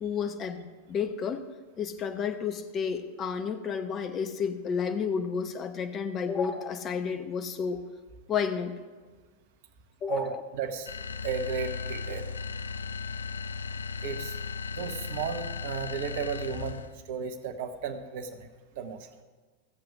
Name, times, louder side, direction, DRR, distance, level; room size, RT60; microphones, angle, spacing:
voice 1, 0.0-1.4 1.8-7.8 8.3-8.7 10.0-10.4, left 6 dB, 25° left, 7 dB, 1.0 m, -31 dB
voice 2, 10.1-10.9 11.2-12.3 14.0-14.4 14.7-16.8 17.1-18.5 18.8-19.1, right 6 dB, 50° right, 8 dB, 0.9 m, -34 dB
sound 1, 10.9-17.0, left 5 dB, 70° left, 0.5 m, -36 dB
15.0 x 7.8 x 4.9 m, 1.4 s
figure-of-eight pair, 90°, 0 cm